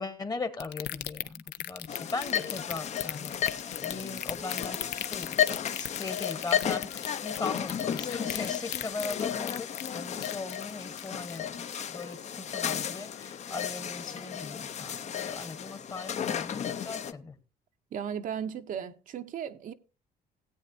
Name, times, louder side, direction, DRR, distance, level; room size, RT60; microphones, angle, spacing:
voice 1, 0.0-4.8 5.1-5.4 5.8-11.6 11.9-17.4, left 3 dB, 20° left, 1.1 m, -39 dB
sound 1, 0.6-12.2 12.5-12.9 13.2-13.3, left 14 dB, 80° left, 0.6 m, -37 dB
sound 2, 1.9-17.1, left 9 dB, 40° left, 0.6 m, -33 dB
voice 2, 17.9-19.7, right 8 dB, 50° right, 0.7 m, -36 dB
17.0 x 8.3 x 2.6 m
cardioid pair, 110°, 17 cm